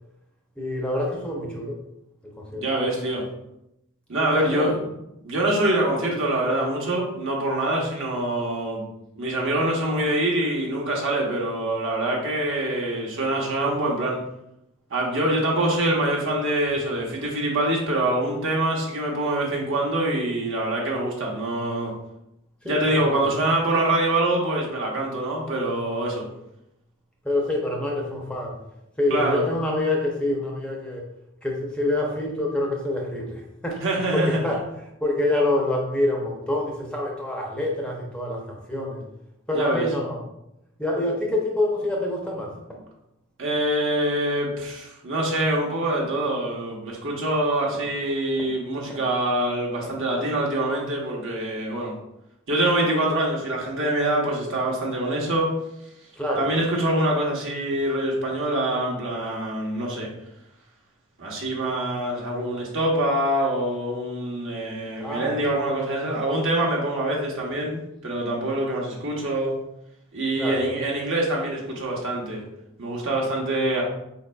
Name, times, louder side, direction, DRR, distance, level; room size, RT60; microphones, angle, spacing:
voice 1, 0.6-1.8 2.4-2.7 4.2-4.7 22.6-23.2 27.2-28.6 29.0-31.0 31.4-33.8 34.1-34.6 35.0-39.0 39.5-40.2 40.8-42.5 48.9-49.0 56.2-56.5 65.0-65.4 70.4-70.7, left 1 dB, 5° left, -1 dB, 0.6 m, -26 dB
voice 2, 2.5-3.2 4.1-4.8 5.2-8.8 9.1-14.2 14.9-21.9 22.6-26.3 29.1-29.4 33.8-34.4 39.5-39.9 43.4-51.9 52.5-55.5 56.3-60.1 61.2-69.6 70.1-72.4 72.8-73.8, right 1 dB, 65° right, -2 dB, 1.0 m, -25 dB
4.2 x 3.9 x 2.2 m, 0.84 s
head